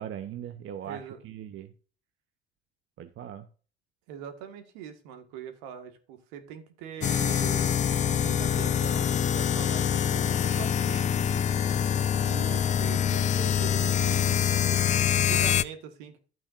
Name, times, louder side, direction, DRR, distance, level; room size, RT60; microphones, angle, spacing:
voice 1, 0.0-1.7 3.0-3.5, right 10 dB, 40° right, 10 dB, 0.9 m, -39 dB
voice 2, 0.8-1.2 4.1-11.6 12.2-16.2, right 9 dB, 60° right, 8 dB, 1.8 m, -42 dB
sound 1, 7.0-15.6, left 8 dB, 25° left, 0.4 m, -25 dB
12.5 x 8.6 x 2.6 m, 0.39 s
figure-of-eight pair, 60°, 32 cm